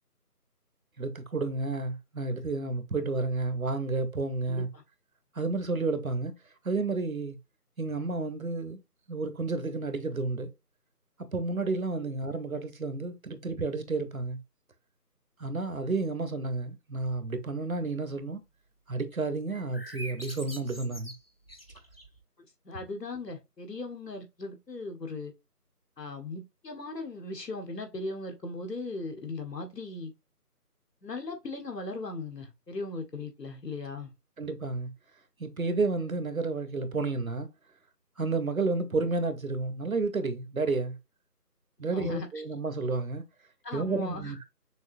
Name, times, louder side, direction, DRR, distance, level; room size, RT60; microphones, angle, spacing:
voice 1, 1.0-4.7 5.3-6.3 6.6-7.4 7.8-8.8 9.1-10.5 11.3-14.4 15.4-18.4 18.9-21.1 34.4-34.9 35.4-37.5 38.2-40.9 41.8-43.2 43.7-44.4, right 3 dB, 60° right, 0.9 m, -31 dB
voice 2, 4.5-4.8 22.6-25.3 26.0-30.1 31.0-34.1 41.9-42.3 43.6-44.3, left 3 dB, 80° left, 1.7 m, -38 dB
sound 1, 19.5-22.2, equal, 40° left, 0.8 m, -44 dB
6.3 x 2.8 x 2.6 m
figure-of-eight pair, 175°, 48 cm